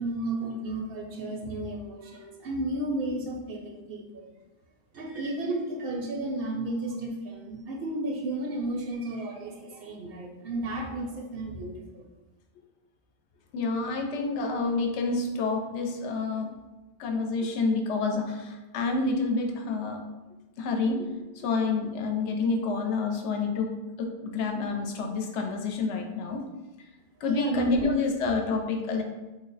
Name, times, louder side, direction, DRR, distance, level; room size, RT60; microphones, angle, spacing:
voice 1, 0.0-4.3 4.9-12.0 27.2-27.9, right 1 dB, 65° right, 1 dB, 0.7 m, -33 dB
sound 1, 4.9-6.1, right 1 dB, 85° right, 1.0 m, -51 dB
voice 2, 13.5-16.5 17.0-20.0 20.6-21.1 21.4-23.7 24.0-26.4 27.2-29.0, left 3 dB, 85° left, 3 dB, 0.9 m, -28 dB
3.2 x 2.0 x 3.9 m, 1.1 s
omnidirectional pair, 1.1 m